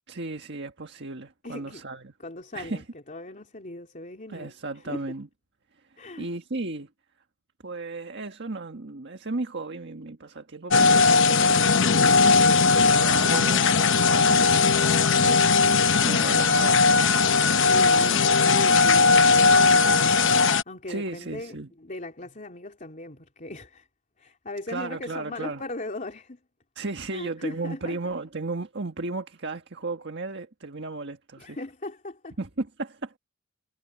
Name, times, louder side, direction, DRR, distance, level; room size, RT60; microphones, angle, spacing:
voice 1, 0.1-2.1 2.5-2.8 4.3-5.3 5.9-6.9 7.6-11.7 12.8-17.4 17.9-18.2 20.9-21.7 24.7-25.6 26.7-31.6 32.4-33.1, right 3 dB, 55° right, 1.6 m, -35 dB
voice 2, 1.4-1.8 2.2-5.1 6.0-6.3 12.3-13.1 14.5-14.7 17.7-23.9 24.2-26.4 27.1-28.0 31.4-32.3, left 2 dB, 40° left, 3.4 m, -39 dB
sound 1, 10.7-20.6, left 4 dB, 60° left, 0.9 m, -19 dB
head